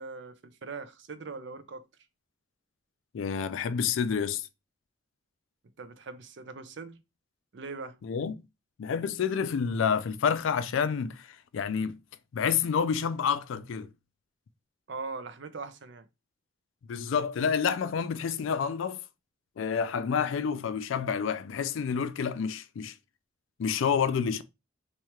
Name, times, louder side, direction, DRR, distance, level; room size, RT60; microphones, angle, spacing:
voice 1, 0.0-1.9 5.8-7.0 7.5-8.0 14.9-16.1, right 4 dB, 55° right, 0.5 m, -41 dB
voice 2, 3.1-4.5 8.0-8.4 8.8-12.0 12.3-13.9 16.9-19.0 19.6-23.0 23.6-24.4, left 6 dB, 70° left, 0.3 m, -29 dB
3.0 x 2.4 x 4.2 m
head